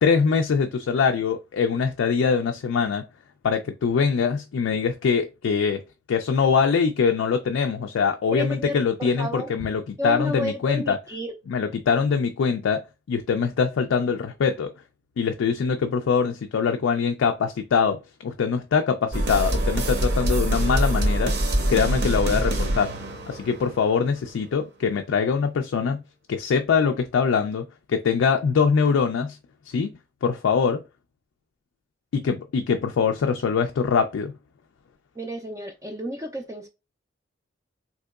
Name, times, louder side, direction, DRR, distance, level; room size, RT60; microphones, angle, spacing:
voice 1, 0.0-3.0 3.4-5.8 6.1-11.0 11.5-12.8 13.1-14.7 15.2-21.3 21.7-22.9 23.3-26.0 26.3-29.4 29.7-29.9 30.2-30.8 32.1-34.3, left 6 dB, 80° left, 0.3 m, -23 dB
voice 2, 8.3-9.5 10.0-11.3 35.2-36.7, left 1 dB, 15° right, 0.3 m, -31 dB
Dark & Deppressive, 19.1-24.1, right 1 dB, 55° right, 0.7 m, -24 dB
3.6 x 2.9 x 2.3 m
head